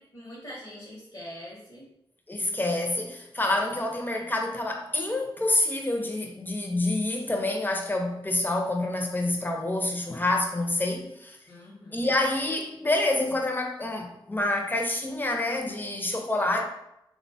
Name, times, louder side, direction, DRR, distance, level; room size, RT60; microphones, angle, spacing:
voice 1, 0.0-1.9 11.5-12.1, equal, 60° left, -5 dB, 0.8 m, -44 dB
voice 2, 2.3-11.4 11.9-16.6, left 2 dB, 20° left, 2 dB, 0.5 m, -27 dB
3.0 x 2.1 x 2.6 m, 0.83 s
cardioid pair, 50°, 9 cm